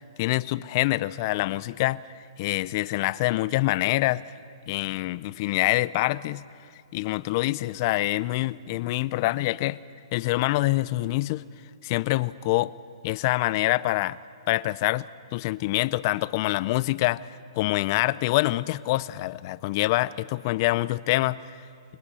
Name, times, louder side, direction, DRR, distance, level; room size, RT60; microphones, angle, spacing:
voice 1, 0.2-2.0 2.4-4.2 4.7-6.4 6.9-9.8 10.1-11.4 11.8-12.7 13.0-14.2 14.5-15.1 15.3-17.2 17.5-21.4, left 18 dB, 40° left, 19 dB, 0.5 m, -25 dB
29.5 x 19.0 x 5.6 m, 2.3 s
hypercardioid pair, 145°, 3 cm